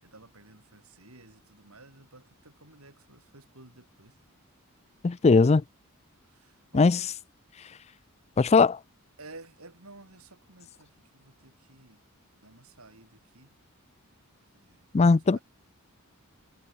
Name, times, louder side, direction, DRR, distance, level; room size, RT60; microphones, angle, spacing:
voice 1, 0.0-4.2 6.2-6.9 9.2-12.0 12.4-13.6 14.5-14.9 15.1-15.4, right 2 dB, 75° right, 7.0 m, -53 dB
voice 2, 5.0-5.6 6.7-7.1 8.4-8.8 14.9-15.4, left 4 dB, 30° left, 0.4 m, -19 dB
head